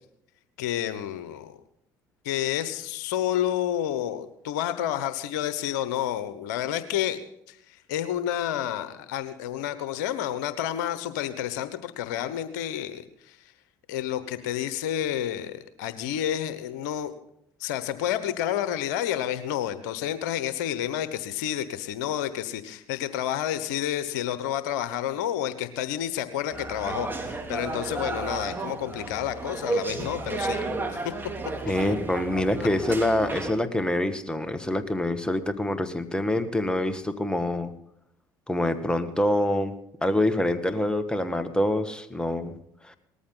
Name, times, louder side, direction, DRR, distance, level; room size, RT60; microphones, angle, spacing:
voice 1, 0.6-1.6 2.2-7.2 7.5-13.4 13.9-17.2 17.6-30.6 30.9-31.0, left 11 dB, 80° left, 12 dB, 1.1 m, -30 dB
sound 1, 26.5-33.5, right 3 dB, 20° right, 3.3 m, -32 dB
voice 2, 31.7-37.7 38.5-39.8 40.0-42.6 42.8-42.9, left 1 dB, 10° left, 9 dB, 1.8 m, -26 dB
19.0 x 14.0 x 3.9 m, 0.74 s
hypercardioid pair, 65°, 10 cm